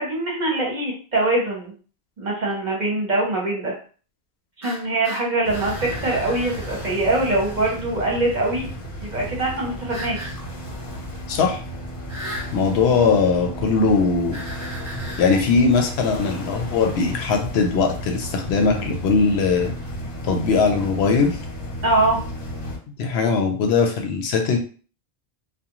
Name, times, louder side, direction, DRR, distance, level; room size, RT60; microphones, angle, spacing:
voice 1, 0.0-1.7 2.2-3.7 4.6-8.7 9.0-10.3 21.8-22.2, right 2 dB, 45° right, -2 dB, 0.9 m, -23 dB
sound 1, 4.6-7.8 9.9-10.4 12.1-12.5 14.3-15.4, equal, 15° right, 0.8 m, -37 dB
sound 2, 5.4-22.8, equal, 60° left, 0.9 m, -33 dB
voice 2, 11.3-11.6 12.5-14.4 15.2-19.7 20.3-21.4 23.0-24.6, left 4 dB, 85° left, 4 dB, 0.8 m, -20 dB
2.4 x 2.2 x 2.9 m, 0.39 s
omnidirectional pair, 1.1 m